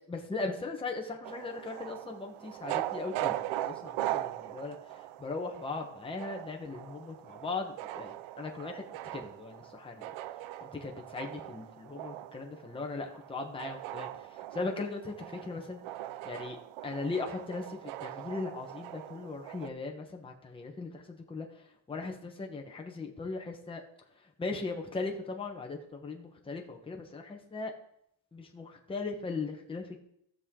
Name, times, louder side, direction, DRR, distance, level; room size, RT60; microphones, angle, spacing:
voice 1, 0.1-3.3 3.6-8.8 9.1-10.1 10.8-15.8 16.2-16.6 16.8-21.6 21.9-23.8 24.2-27.7 28.3-30.0, left 3 dB, 10° left, 1 dB, 1.1 m, -38 dB
sound 1, 1.2-19.7, right 14 dB, 80° right, 0.6 m, -40 dB
16.5 x 6.6 x 3.8 m, 0.74 s
cardioid pair, 175°, 47 cm